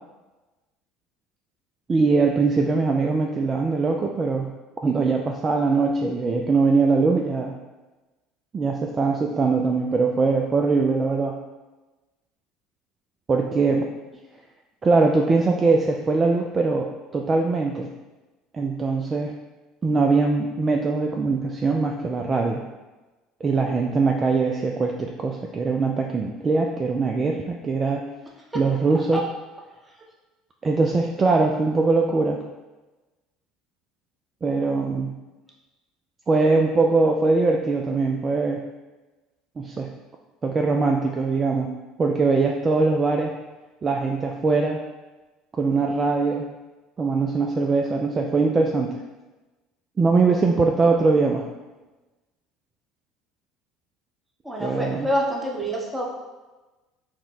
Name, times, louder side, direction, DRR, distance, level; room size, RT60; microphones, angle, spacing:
voice 1, 1.9-4.5 4.8-7.6 8.5-11.4 13.3-13.9 14.8-17.9 18.5-19.3 19.8-22.6 23.4-28.0 28.5-29.2 30.6-32.4 34.4-35.1 36.3-38.6 39.6-39.9 40.4-41.7 42.0-43.4 43.8-44.8 45.5-46.5 47.0-48.9 50.0-51.5 54.6-55.1, right 3 dB, 30° right, 2 dB, 0.3 m, -22 dB
voice 2, 54.4-56.1, equal, 10° right, -1 dB, 0.9 m, -27 dB
4.4 x 2.2 x 3.9 m, 1.2 s
hypercardioid pair, 65°, 0 cm